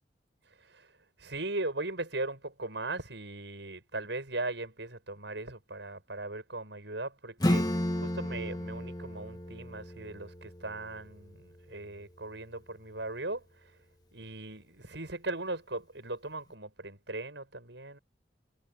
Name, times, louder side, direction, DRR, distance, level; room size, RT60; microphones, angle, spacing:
voice 1, 1.2-7.6 7.9-13.4 14.1-18.0, right 2 dB, 75° right, 7.9 m, -38 dB
Acoustic guitar / Strum, 7.4-12.6, left 1 dB, 20° left, 1.7 m, -34 dB
head